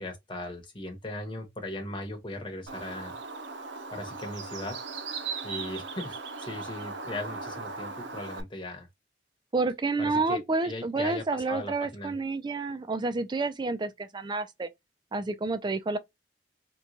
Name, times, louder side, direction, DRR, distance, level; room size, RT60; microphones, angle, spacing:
voice 1, 0.0-3.2 3.9-4.8 5.4-8.9 10.0-12.2, left 1 dB, 30° left, 1.1 m, -38 dB
Bird, 2.7-8.4, right 4 dB, 85° right, 0.6 m, -38 dB
voice 2, 9.5-14.7 15.1-16.0, right 3 dB, 25° right, 0.4 m, -29 dB
3.0 x 2.2 x 3.8 m
head